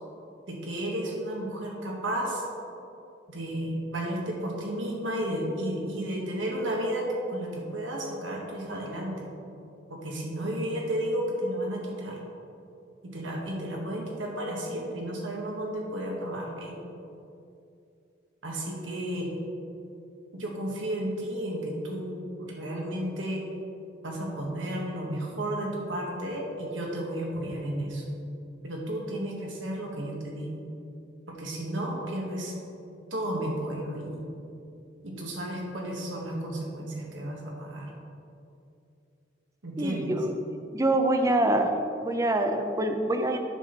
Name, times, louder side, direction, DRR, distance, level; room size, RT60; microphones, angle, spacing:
voice 1, 0.5-2.4 3.3-9.2 9.9-12.2 13.0-16.8 18.4-19.3 20.3-23.4 24.0-28.0 28.6-30.6 31.3-32.5 33.1-34.2 35.0-37.9 39.6-40.1, right 1 dB, 80° right, -1 dB, 1.6 m, -33 dB
voice 2, 39.8-40.3 40.7-41.7 42.0-43.4, right 1 dB, 15° right, 5 dB, 0.5 m, -25 dB
9.0 x 6.1 x 4.0 m, 2.6 s
head